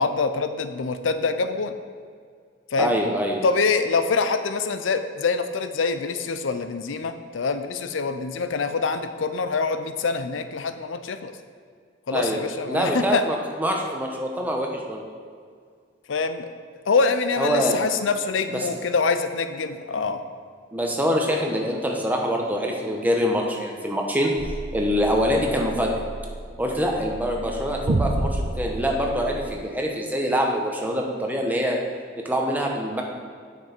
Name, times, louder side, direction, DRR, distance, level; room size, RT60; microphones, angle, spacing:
voice 1, 0.0-1.7 2.7-2.9 3.4-11.3 12.1-13.2 16.1-16.5 16.9-20.2, left 4 dB, 85° left, 10 dB, 0.5 m, -25 dB
voice 2, 2.8-3.4 12.1-15.0 17.4-17.8 18.5-18.7 20.7-24.3 24.7-25.9 26.6-31.8 32.2-33.0, equal, 10° right, 0 dB, 0.9 m, -25 dB
sound 1, 24.4-29.5, right 2 dB, 70° right, 0.7 m, -30 dB
8.6 x 6.0 x 4.4 m, 2.1 s
head